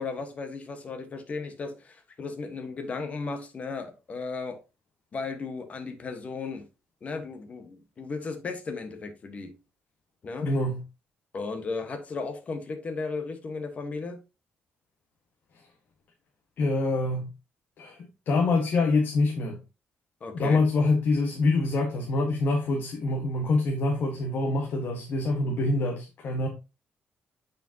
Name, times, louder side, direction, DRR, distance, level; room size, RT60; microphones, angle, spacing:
voice 1, 0.0-4.6 5.1-6.7 7.0-9.5 10.2-10.5 11.3-14.2 20.2-20.6, left 4 dB, 35° left, 1.3 m, -35 dB
voice 2, 10.4-10.8 16.6-17.3 17.8-19.6 20.3-26.5, left 2 dB, 55° left, 1.4 m, -25 dB
8.9 x 5.1 x 2.9 m
cardioid pair, 125°, 4 cm